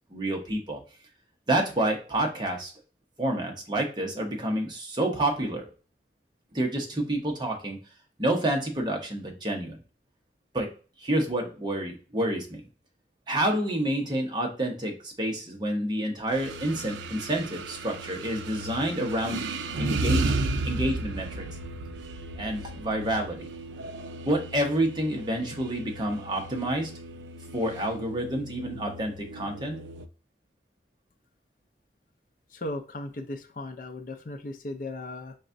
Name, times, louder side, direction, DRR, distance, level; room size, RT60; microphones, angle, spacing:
voice 1, 0.1-0.8 1.5-2.7 3.2-5.7 6.5-7.8 8.2-9.8 10.5-10.7 11.0-12.7 13.3-19.4 19.8-20.3 20.6-21.5 22.4-23.5 24.3-26.9 27.5-29.8, right 1 dB, 25° right, 1 dB, 0.9 m, -28 dB
sound 1, 16.3-30.1, right 2 dB, 85° right, 0.4 m, -34 dB
voice 2, 32.5-35.3, left 1 dB, 50° left, 4 dB, 0.5 m, -36 dB
4.1 x 3.3 x 2.5 m, 0.37 s
head